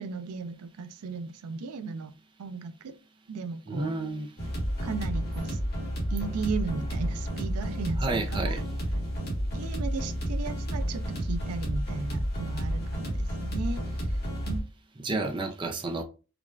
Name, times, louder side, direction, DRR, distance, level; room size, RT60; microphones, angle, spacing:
voice 1, 0.0-2.9 3.3-4.0 4.8-5.6 6.1-8.6 9.5-14.2 14.5-14.6, right 4 dB, 90° right, 0.4 m, -36 dB
voice 2, 3.7-4.3 8.0-8.6 15.0-16.0, right 3 dB, 20° right, 0.4 m, -30 dB
sound 1, 4.4-14.6, equal, 45° left, 1.4 m, -31 dB
5.0 x 2.3 x 2.4 m
head